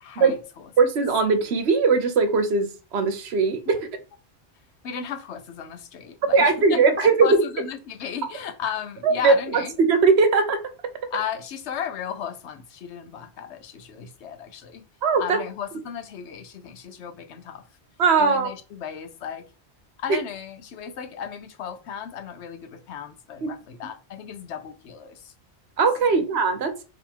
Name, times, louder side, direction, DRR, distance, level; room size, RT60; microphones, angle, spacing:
voice 1, 0.0-0.7 3.6-3.8 4.8-9.8 11.1-14.9 15.2-17.7 18.2-19.5 20.0-25.3 26.0-26.3, left 8 dB, 90° left, 1.0 m, -35 dB
voice 2, 0.8-3.8 6.3-7.4 9.0-10.6 15.0-15.4 18.0-18.5 23.4-23.5 25.8-26.7, right 4 dB, 75° right, 1.0 m, -20 dB
3.7 x 3.0 x 4.4 m
omnidirectional pair, 1.1 m